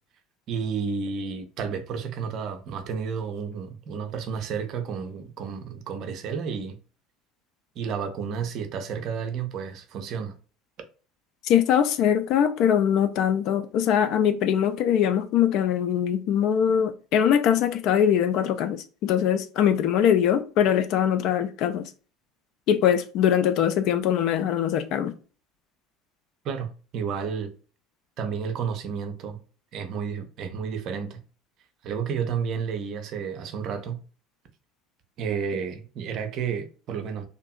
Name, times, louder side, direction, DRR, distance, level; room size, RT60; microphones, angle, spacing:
voice 1, 0.5-6.8 7.8-10.3 26.4-27.5 28.2-29.4 29.7-31.2 31.8-34.0 35.2-37.3, right 6 dB, 45° right, 0.4 m, -31 dB
voice 2, 11.5-21.9 22.7-25.1, left 9 dB, 50° left, 0.3 m, -22 dB
2.6 x 2.5 x 2.2 m
figure-of-eight pair, 65°, 0 cm